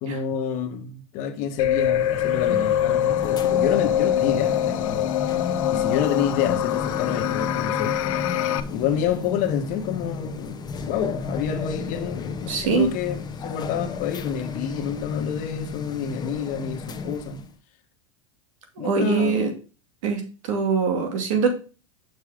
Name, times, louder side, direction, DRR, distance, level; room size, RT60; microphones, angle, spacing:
voice 1, 0.0-5.2 5.7-8.0 8.7-10.6 10.8-17.4 18.8-19.5, left 8 dB, 50° left, 1.4 m, -28 dB
sound 1, 1.6-8.6, left 11 dB, 75° left, 0.7 m, -23 dB
sound 2, 1.9-17.5, left 4 dB, 25° left, 0.9 m, -34 dB
voice 2, 12.5-12.9 18.8-19.5 20.0-21.5, right 5 dB, 75° right, 2.4 m, -23 dB
6.6 x 6.4 x 3.6 m
supercardioid pair, 115°, 17 cm